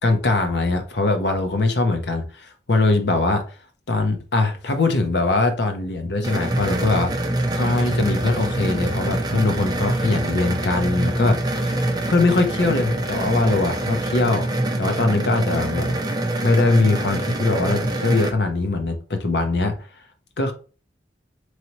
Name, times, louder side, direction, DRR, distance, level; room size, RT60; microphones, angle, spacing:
voice 1, 0.0-3.4 3.9-7.1 7.5-11.8 12.1-14.5 14.8-16.0 16.4-19.7 20.4-20.5, left 2 dB, 75° left, 6 dB, 0.8 m, -21 dB
sound 1, 6.2-18.3, right 1 dB, 25° right, 0.6 m, -25 dB
Heavy gong, 6.5-14.2, left 3 dB, 45° left, 0.5 m, -39 dB
4.0 x 3.2 x 3.0 m, 0.36 s
head